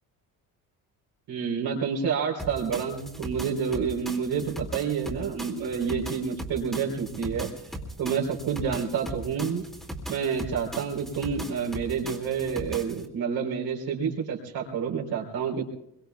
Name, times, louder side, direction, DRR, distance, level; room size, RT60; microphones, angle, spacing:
voice 1, 1.3-7.5 8.0-9.6 10.1-15.6, right 6 dB, 70° right, -2 dB, 4.0 m, -29 dB
sound 1, 2.4-13.1, right 1 dB, ahead, 2.4 m, -39 dB
26.5 x 23.0 x 2.4 m, 0.80 s
cardioid pair, 145°, 38 cm